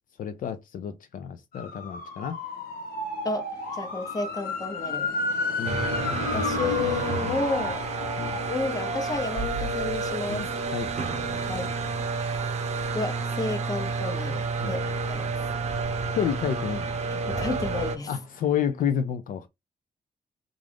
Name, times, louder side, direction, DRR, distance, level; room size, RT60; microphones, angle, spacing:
voice 1, 0.2-2.4 5.6-5.8 8.2-8.4 10.3-10.9 14.6-14.8 16.1-17.0 18.1-19.5, left 8 dB, 65° left, 0.4 m, -30 dB
sound 1, 1.5-15.3 15.7-18.2 18.5-18.6, left 3 dB, 85° left, 1.1 m, -35 dB
voice 2, 3.2-5.1 6.2-7.9 8.5-10.5 11.5-11.7 12.9-15.4 17.1-18.1, left 3 dB, 25° left, 0.8 m, -31 dB
sound 2, 5.6-18.0, right 4 dB, 45° right, 0.7 m, -30 dB
3.7 x 2.4 x 3.4 m
wide cardioid pair, 165°, 15 cm